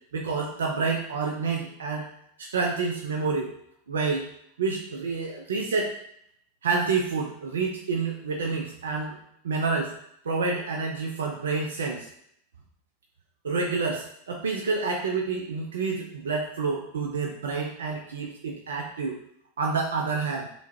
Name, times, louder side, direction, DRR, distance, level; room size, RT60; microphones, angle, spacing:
voice 1, 0.1-2.0 2.4-3.5 3.9-4.3 4.6-5.9 6.6-9.2 9.4-9.9 10.3-12.1 13.4-19.2 19.6-20.5, right 4 dB, 80° right, 0 dB, 0.5 m, -28 dB
3.6 x 2.8 x 4.3 m, 0.72 s
hypercardioid pair, 95°, 0 cm